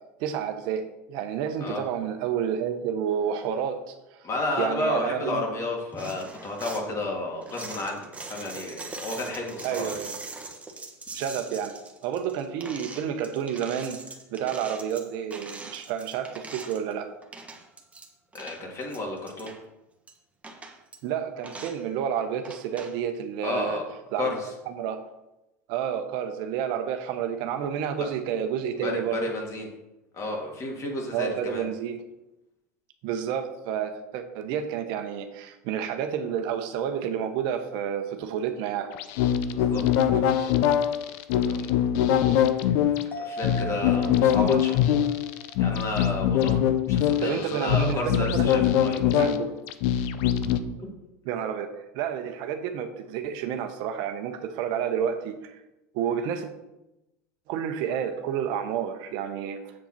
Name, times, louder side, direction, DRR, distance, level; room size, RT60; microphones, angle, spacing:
voice 1, 0.2-0.8 1.1-3.9 4.6-5.5 9.6-10.1 11.1-11.7 12.0-14.0 14.3-17.1 21.0-23.8 24.1-24.3 24.7-25.0 25.7-29.2 31.1-32.0 33.0-38.9 47.2-48.5 49.2-49.5 51.2-51.7 51.9-55.6 55.9-56.5 57.5-59.6, right 8 dB, 60° right, 7 dB, 1.0 m, -30 dB
voice 2, 4.2-10.0 18.3-19.5 23.4-23.8 24.2-24.5 28.8-29.7 30.1-31.7 39.5-39.8 40.4-40.5 41.4-41.9 42.5-42.9 43.2-45.1 45.6-49.2 50.8-50.9, left 2 dB, 35° left, 0 dB, 2.6 m, -32 dB
sound 1, 5.9-6.9 7.4-16.9 17.2-18.1 18.3-19.6 20.1-20.2 20.4-21.0 21.4-21.8 22.4-22.9, right 3 dB, 15° right, 1.4 m, -41 dB
sound 2, 38.9-50.6, left 10 dB, 60° left, 0.7 m, -23 dB
sound 3, 43.1-46.8 47.2-47.3, left 1 dB, 20° left, 1.5 m, -40 dB
7.4 x 7.0 x 4.4 m, 0.93 s
hypercardioid pair, 95°, 9 cm